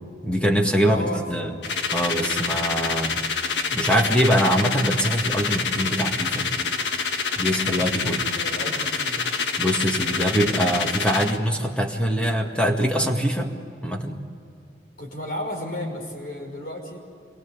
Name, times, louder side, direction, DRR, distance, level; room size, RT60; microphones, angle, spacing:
voice 1, 0.2-1.5 1.9-3.2 3.7-6.5 7.4-8.2 9.6-13.5 13.8-14.2, equal, 5° left, 2 dB, 2.0 m, -23 dB
voice 2, 0.8-1.6 8.0-9.3 15.0-17.0, left 1 dB, 50° left, 2 dB, 5.8 m, -33 dB
sound 1, 1.6-11.4, left 5 dB, 80° left, 1.5 m, -26 dB
27.0 x 23.0 x 8.4 m, 2.5 s
head